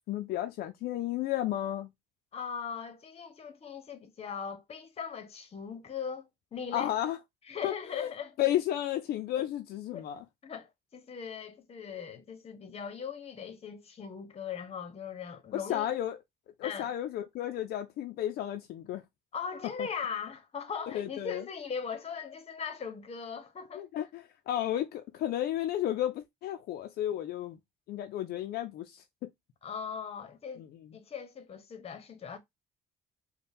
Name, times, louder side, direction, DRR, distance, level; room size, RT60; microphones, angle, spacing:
voice 1, 0.1-1.9 6.7-7.2 7.6-8.1 8.4-10.2 15.5-16.2 16.6-19.0 19.8-19.9 20.9-21.4 23.7-27.6 27.9-29.0 30.6-30.7, left 12 dB, 65° left, 0.5 m, -33 dB
voice 2, 2.3-6.9 7.5-8.3 9.9-10.1 10.4-15.9 16.6-16.9 19.3-23.9 29.6-32.4, left 6 dB, 35° left, 0.9 m, -39 dB
4.2 x 2.2 x 3.5 m
cardioid pair, 110°, 17 cm